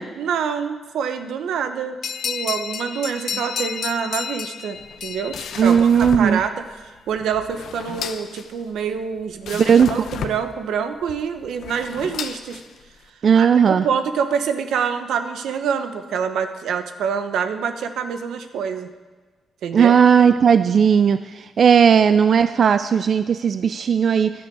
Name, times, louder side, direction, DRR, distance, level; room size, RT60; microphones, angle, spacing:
voice 1, 0.2-2.0 2.2-12.6 13.4-18.9 19.6-20.0, right 7 dB, 85° right, 8 dB, 1.0 m, -26 dB
sound 1, 2.0-6.3, left 7 dB, 55° left, 0.5 m, -31 dB
sound 2, 4.7-13.1, left 8 dB, 75° left, 0.8 m, -35 dB
voice 2, 5.6-6.4 9.6-9.9 13.2-13.8 19.7-24.3, right 7 dB, 50° right, 11 dB, 0.4 m, -16 dB
15.5 x 11.5 x 4.7 m, 1.3 s
cardioid pair, 125°, 0 cm